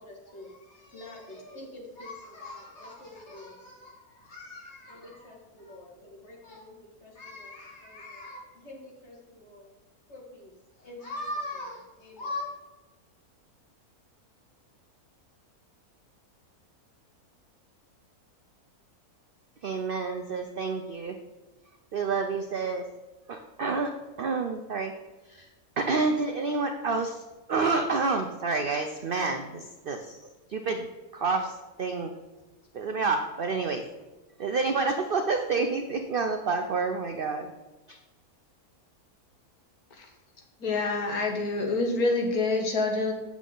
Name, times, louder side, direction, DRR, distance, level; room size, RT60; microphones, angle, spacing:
voice 1, 0.0-9.7 10.1-12.5, left 2 dB, 45° left, -3 dB, 2.3 m, -42 dB
voice 2, 19.6-21.2 21.9-22.8 23.3-24.9 25.3-25.5 25.8-27.2 27.5-30.2 30.5-30.9 31.1-32.1 32.7-33.8 34.4-37.5 37.9-38.0, right 4 dB, 65° right, 5 dB, 0.5 m, -29 dB
voice 3, 40.6-43.1, left 3 dB, 75° left, 2 dB, 1.7 m, -26 dB
8.2 x 7.1 x 3.8 m, 1.1 s
omnidirectional pair, 1.6 m